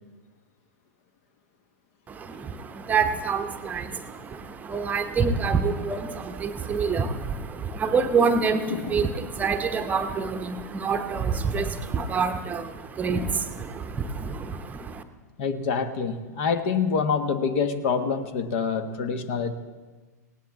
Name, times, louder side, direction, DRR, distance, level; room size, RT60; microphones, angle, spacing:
voice 1, 2.1-15.0, right 5 dB, 15° right, 7 dB, 0.9 m, -27 dB
voice 2, 8.7-9.0 15.4-19.5, left 5 dB, 45° left, 10 dB, 1.3 m, -26 dB
19.0 x 18.0 x 3.7 m, 1.3 s
figure-of-eight pair, 95°, 9 cm